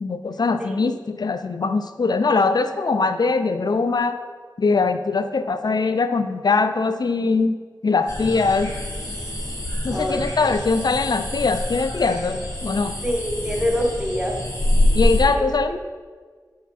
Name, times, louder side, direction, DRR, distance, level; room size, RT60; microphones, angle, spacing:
voice 1, 0.0-4.2 4.6-7.6 7.8-8.7 9.8-13.0 14.9-15.8, left 4 dB, 65° left, 10 dB, 0.3 m, -21 dB
sound 1, 8.1-15.2, left 1 dB, 45° left, 2.0 m, -26 dB
voice 2, 9.9-10.5 13.0-14.3 15.3-15.4, equal, 10° right, 0 dB, 1.1 m, -25 dB
7.0 x 4.7 x 4.1 m, 1.5 s
wide cardioid pair, 45°, 8 cm